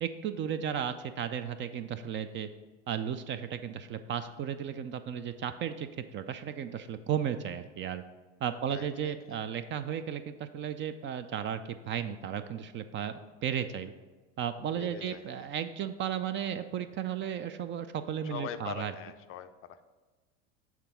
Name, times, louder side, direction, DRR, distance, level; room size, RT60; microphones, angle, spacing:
voice 1, 0.0-2.5 2.9-8.0 8.4-13.9 14.4-18.9, right 9 dB, 35° right, 10 dB, 0.4 m, -34 dB
voice 2, 8.7-9.4 14.8-15.5 18.2-19.8, left 9 dB, 40° left, 10 dB, 0.4 m, -43 dB
7.3 x 3.4 x 5.8 m, 1.3 s
hypercardioid pair, 75°, 36 cm